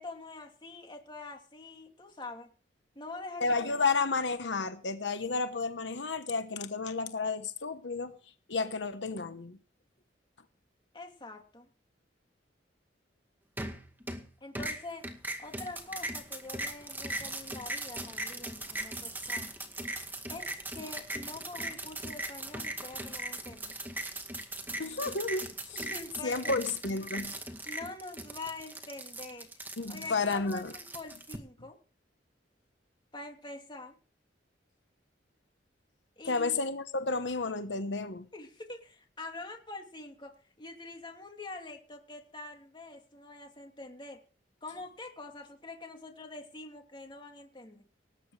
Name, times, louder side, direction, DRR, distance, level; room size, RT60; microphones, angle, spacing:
voice 1, 0.0-2.5 2.9-3.9 10.9-11.7 14.4-15.1 15.4-19.6 20.3-23.8 25.7-26.6 27.7-29.5 29.8-31.8 33.1-34.0 36.2-36.6 38.3-44.2 44.6-47.8, left 2 dB, 25° left, 3 dB, 2.6 m, -45 dB
voice 2, 3.4-8.2 8.5-9.6 24.8-25.9 26.2-27.3 29.8-30.7 36.2-38.3, left 4 dB, 85° left, 9 dB, 1.1 m, -32 dB
sound 1, 13.6-14.3 14.6-31.4, right 1 dB, 10° right, 2.1 m, -39 dB
19.0 x 9.4 x 4.9 m, 0.39 s
head